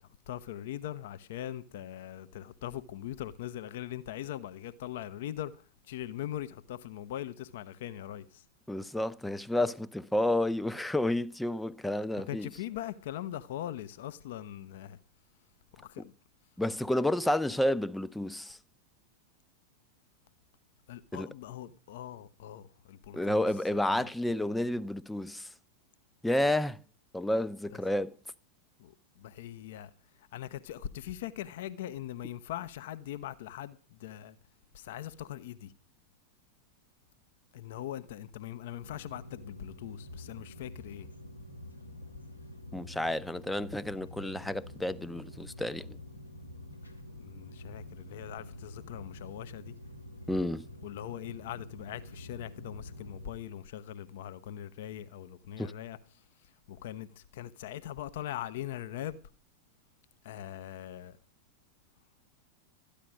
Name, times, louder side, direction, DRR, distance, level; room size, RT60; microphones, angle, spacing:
voice 1, 0.0-8.4 12.3-15.0 15.8-16.1 20.9-23.5 23.8-24.1 27.7-27.8 28.8-29.9 30.2-34.4 34.7-35.7 37.5-41.1 47.2-49.7 50.8-59.2 60.2-61.2, left 12 dB, 55° left, 0.7 m, -41 dB
voice 2, 8.7-12.5 16.6-18.6 21.1-21.3 23.1-25.5 26.2-26.8 27.1-28.1 42.7-46.0 50.3-50.6 55.6-55.7, left 1 dB, 5° left, 0.6 m, -30 dB
sound 1, 38.8-53.3, left 1 dB, 85° left, 2.0 m, -47 dB
13.5 x 10.0 x 6.2 m
figure-of-eight pair, 90°, 0 cm